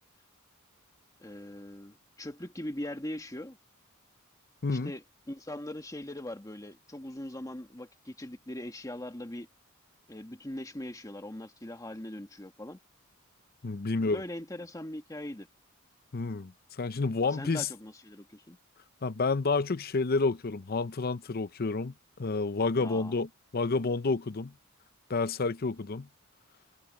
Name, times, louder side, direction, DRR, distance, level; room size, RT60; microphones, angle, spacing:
voice 1, 1.2-3.6 4.7-9.5 10.1-12.8 13.9-15.5 17.3-18.6 22.8-23.1, left 1 dB, 15° left, 1.6 m, -41 dB
voice 2, 13.6-14.2 16.1-17.7 19.0-24.5 25.1-26.1, left 3 dB, 45° left, 0.7 m, -30 dB
head